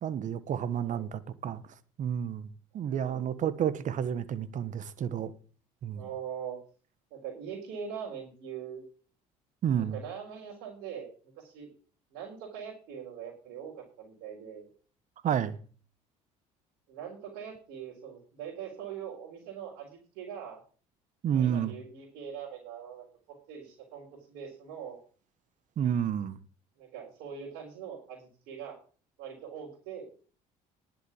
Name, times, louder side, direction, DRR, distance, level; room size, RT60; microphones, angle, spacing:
voice 1, 0.0-1.6 2.0-5.3 5.8-6.1 9.6-10.0 15.2-15.6 21.2-21.7 25.8-26.4, right 9 dB, 50° right, 1.3 m, -30 dB
voice 2, 6.0-6.6 7.1-8.8 9.8-11.7 12.1-14.7 16.9-20.6 21.3-23.1 23.5-25.0 26.8-28.8 29.2-30.1, right 8 dB, 75° right, 4.5 m, -42 dB
11.0 x 7.6 x 7.2 m
supercardioid pair, 80°, 16 cm